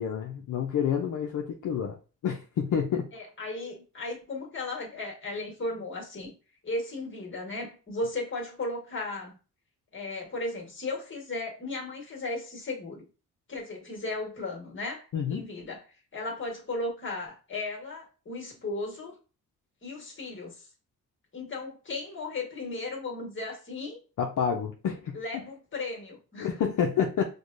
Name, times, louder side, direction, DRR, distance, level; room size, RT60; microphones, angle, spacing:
voice 1, 0.0-2.0 2.2-3.1 15.1-15.5 24.2-25.2 26.4-27.2, left 7 dB, 65° left, 0.6 m, -28 dB
voice 2, 3.1-6.3 6.6-9.4 9.9-13.0 13.5-15.8 16.1-19.2 19.8-20.7 21.3-24.0 25.1-26.5, left 2 dB, 35° left, 1.4 m, -36 dB
4.6 x 2.2 x 2.5 m
cardioid pair, 85°, 33 cm